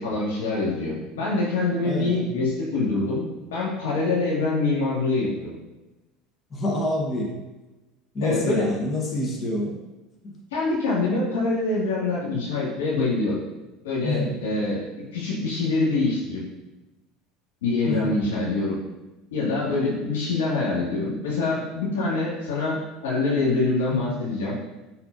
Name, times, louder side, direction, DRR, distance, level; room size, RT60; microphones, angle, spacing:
voice 1, 0.0-3.3 3.5-5.5 8.2-8.7 10.5-13.4 13.8-14.8 15.1-16.4 17.6-18.8 19.3-24.5, left 3 dB, 90° left, -6 dB, 2.2 m, -25 dB
voice 2, 1.8-2.3 6.5-7.4 8.1-9.8 10.2-10.4 14.0-14.4 17.8-18.2 23.9-24.2, left 1 dB, 30° left, -1 dB, 1.4 m, -27 dB
9.4 x 4.3 x 2.7 m, 1.1 s
supercardioid pair, 95°, 0 cm